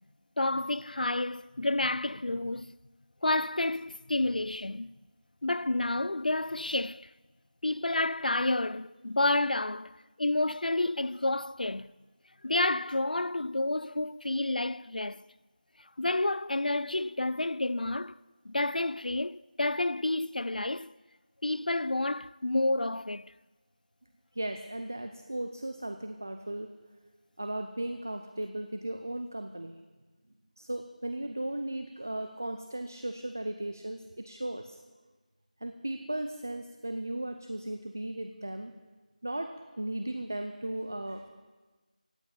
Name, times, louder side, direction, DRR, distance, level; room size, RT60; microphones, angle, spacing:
voice 1, 0.4-2.7 3.2-4.9 5.4-7.1 7.6-11.9 12.4-15.2 16.0-18.2 18.4-20.9 21.4-23.3, left 2 dB, 90° left, 0.4 m, -30 dB
voice 2, 24.3-26.7 27.4-29.7 30.6-34.8 35.6-38.7 39.2-41.3, right 1 dB, 20° right, 0.4 m, -36 dB
16.5 x 8.2 x 8.5 m
figure-of-eight pair, 180°, 4 cm